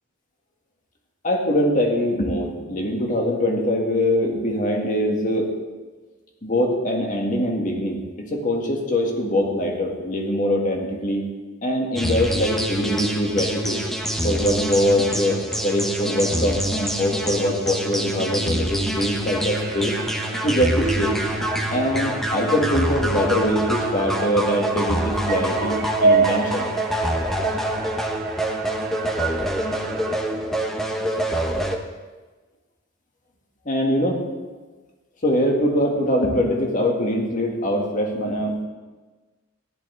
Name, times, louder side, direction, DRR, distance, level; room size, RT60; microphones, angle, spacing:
voice 1, 1.2-5.5 6.4-11.2 11.6-13.8 14.2-19.9 20.4-21.1 21.7-26.7 33.7-34.2 35.2-38.6, left 1 dB, 40° left, 0 dB, 2.0 m, -23 dB
sound 1, 12.0-31.8, right 1 dB, ahead, 0.9 m, -26 dB
sound 2, 19.5-30.2, right 4 dB, 50° right, 0.8 m, -28 dB
15.0 x 11.0 x 3.5 m, 1.3 s
head